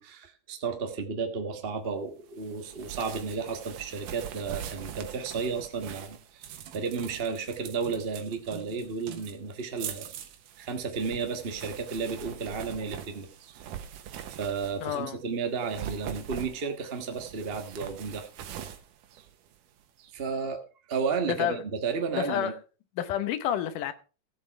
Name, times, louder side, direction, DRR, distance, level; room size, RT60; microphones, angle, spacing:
voice 1, 0.0-10.1 10.6-13.6 14.3-18.6 19.1-19.2 20.0-20.6 20.9-22.5, right 5 dB, 50° right, 0.7 m, -33 dB
sound 1, 2.4-15.0 15.5-19.8, right 10 dB, 85° right, 2.8 m, -43 dB
voice 2, 14.8-15.2 21.2-21.6 22.1-22.5 23.0-23.9, left 10 dB, 85° left, 2.5 m, -29 dB
15.5 x 7.6 x 4.6 m
omnidirectional pair, 3.6 m